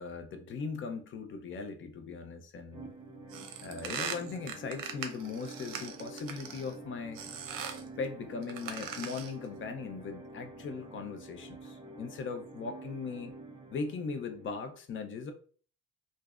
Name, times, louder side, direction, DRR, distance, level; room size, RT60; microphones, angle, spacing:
voice 1, 0.0-2.9 3.6-7.2 8.0-13.3 13.7-15.3, left 4 dB, 35° left, 0.5 m, -39 dB
sound 1, 2.7-14.7, right 2 dB, 15° right, 0.4 m, -48 dB
sound 2, 3.3-6.7 7.2-7.9 8.4-9.4, right 7 dB, 85° right, 0.7 m, -40 dB
4.8 x 2.0 x 2.4 m
cardioid pair, 160°, 33 cm